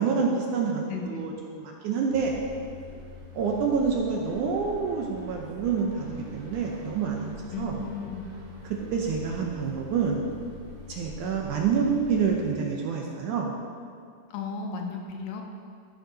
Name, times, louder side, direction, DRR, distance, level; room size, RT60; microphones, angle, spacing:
voice 1, 0.0-2.3 3.4-7.8 8.6-10.3 10.9-13.6, right 5 dB, 75° right, 0 dB, 2.0 m, -27 dB
voice 2, 0.9-1.3 7.5-8.3 14.3-15.4, left 4 dB, 80° left, 2 dB, 2.4 m, -35 dB
sound 1, 2.1-12.5, left 3 dB, 45° right, 2.3 m, -45 dB
15.0 x 5.1 x 5.1 m, 2.2 s
omnidirectional pair, 4.2 m